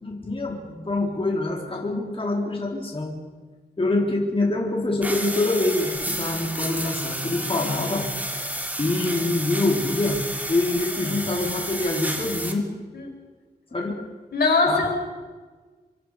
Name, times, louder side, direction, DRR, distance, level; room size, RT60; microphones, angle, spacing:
voice 1, 0.0-3.2 3.8-8.1 8.8-12.7 13.7-14.0 14.7-14.8, left 2 dB, 35° left, -1 dB, 4.1 m, -25 dB
sound 1, 5.0-12.5, right 1 dB, 10° right, 3.3 m, -31 dB
voice 2, 14.3-14.9, left 3 dB, 70° left, 2 dB, 6.2 m, -21 dB
26.0 x 25.5 x 5.1 m, 1.4 s
wide cardioid pair, 90°, 17 cm